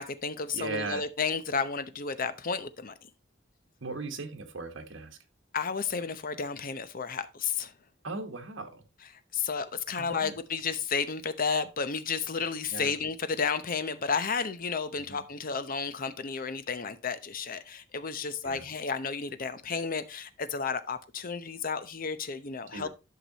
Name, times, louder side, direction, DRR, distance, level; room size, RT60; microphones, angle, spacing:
voice 1, 0.0-2.9 5.5-7.7 9.3-22.9, left 5 dB, 45° left, 0.8 m, -32 dB
voice 2, 0.5-1.1 3.8-5.2 8.0-8.8 10.0-10.4 12.7-12.9 15.0-15.2 18.4-18.6 22.7-22.9, right 3 dB, 85° right, 1.4 m, -38 dB
11.5 x 5.9 x 2.9 m
head